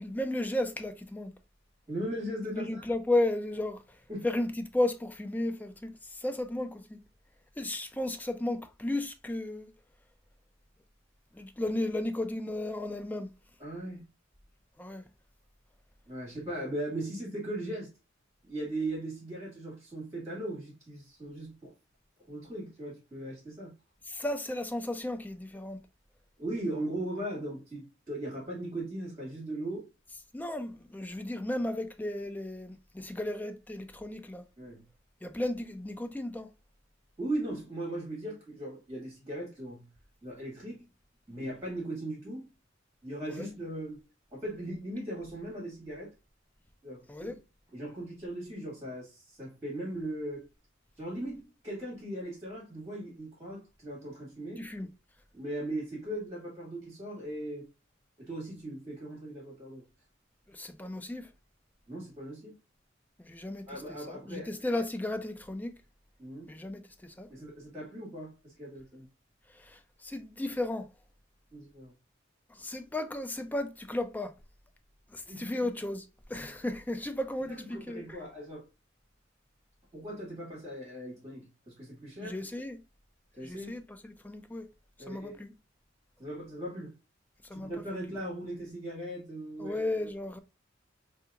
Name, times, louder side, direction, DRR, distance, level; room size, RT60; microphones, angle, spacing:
voice 1, 0.0-1.3 2.5-7.0 7.6-9.7 11.3-13.3 14.8-15.0 24.1-25.8 30.3-34.4 35.2-36.5 43.3-43.5 47.1-47.3 54.6-54.9 60.5-61.3 63.2-63.8 64.1-65.8 66.5-67.3 69.5-70.9 72.5-74.3 75.1-76.0 76.3-78.0 82.2-82.8 83.4-84.7 85.1-85.5 87.4-87.7 89.6-90.4, left 1 dB, 10° left, 0.3 m, -34 dB
voice 2, 1.9-2.8 4.1-4.3 13.6-14.0 16.0-17.9 18.4-21.7 22.3-23.7 26.4-29.9 34.6-34.8 37.2-39.9 40.2-40.9 41.3-42.5 43.0-44.0 44.3-46.1 46.8-47.4 47.7-50.5 51.0-54.6 55.3-57.6 58.2-59.9 61.9-62.5 63.7-64.5 66.2-66.5 67.3-69.1 71.5-71.9 75.3-75.7 77.5-78.7 79.9-82.4 83.4-83.8 85.0-85.4 86.2-86.9 87.5-89.8, right 1 dB, 15° right, 1.7 m, -38 dB
3.4 x 2.9 x 2.3 m
head